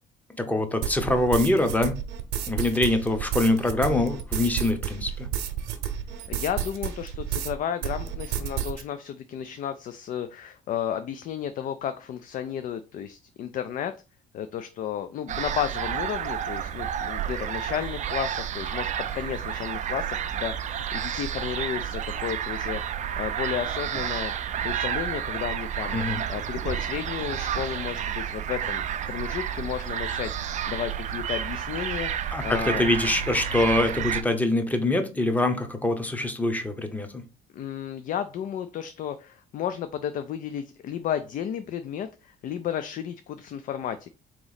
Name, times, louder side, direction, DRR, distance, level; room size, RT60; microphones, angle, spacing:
voice 1, 0.4-2.0 2.5-5.3 25.9-26.2 32.3-37.2, left 2 dB, 10° left, 7 dB, 0.7 m, -24 dB
sound 1, 0.8-7.5 7.8-8.8, right 10 dB, 85° right, 0.8 m, -31 dB
voice 2, 6.3-13.9 14.3-26.0 26.3-28.8 29.1-32.9 37.5-44.1, left 9 dB, 55° left, 10 dB, 0.4 m, -33 dB
sound 2, 15.3-34.2, right 9 dB, 45° right, 0.4 m, -30 dB
sound 3, 33.0-34.7, left 3 dB, 80° left, 0.8 m, -42 dB
3.9 x 3.0 x 3.9 m, 0.33 s
cardioid pair, 110°, 17 cm